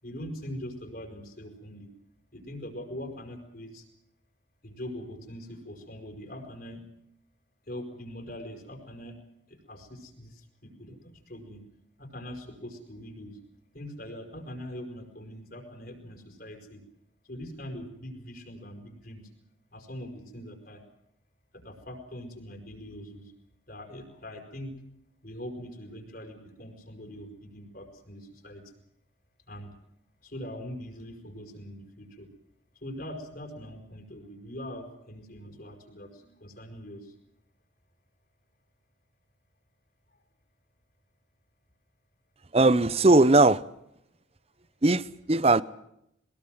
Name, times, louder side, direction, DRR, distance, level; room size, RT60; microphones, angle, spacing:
voice 1, 0.0-1.9 2.3-3.8 4.6-6.9 7.7-9.2 9.5-11.7 12.0-13.4 13.7-16.8 17.2-19.3 19.7-20.8 21.5-23.3 23.7-24.7 25.2-28.6 29.5-29.8 30.2-32.3 32.8-37.1, equal, 50° left, 5.5 m, -42 dB
voice 2, 42.5-43.6 44.8-45.6, right 2 dB, 30° right, 0.8 m, -19 dB
22.0 x 20.5 x 7.7 m
head